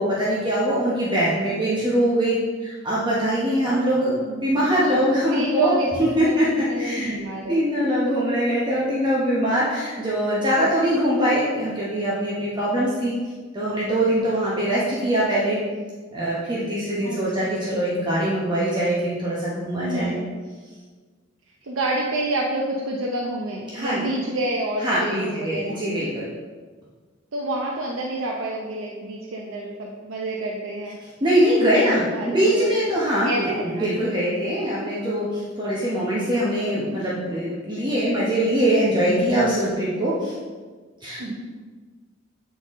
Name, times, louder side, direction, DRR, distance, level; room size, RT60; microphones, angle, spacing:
voice 1, 0.0-2.3 2.6-7.1 7.5-13.1 13.5-15.6 16.1-20.2 23.7-24.0 24.8-26.3 31.2-40.3 41.0-41.3, equal, 25° right, -7 dB, 1.0 m, -22 dB
voice 2, 4.6-5.1 5.3-5.9 6.4-7.6 14.2-14.6 17.0-17.2 19.8-20.3 21.6-25.8 27.3-31.0 31.6-32.7 33.2-33.9 39.2-39.7 41.2-41.3, right 2 dB, 75° right, -2 dB, 0.7 m, -29 dB
8.3 x 4.0 x 3.6 m, 1.4 s
head